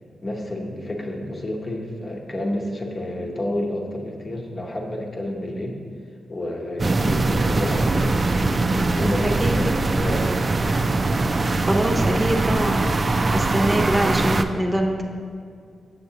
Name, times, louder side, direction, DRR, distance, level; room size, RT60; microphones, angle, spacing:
voice 1, 0.2-5.8 6.3-8.2 8.5-10.5, left 1 dB, 45° left, 0 dB, 0.9 m, -29 dB
sound 1, 6.8-14.4, right 2 dB, 45° right, 0.3 m, -22 dB
voice 2, 9.2-9.6 11.4-15.0, right 1 dB, 25° right, 2 dB, 0.7 m, -24 dB
6.8 x 6.5 x 2.8 m, 2.3 s
supercardioid pair, 40°, 0 cm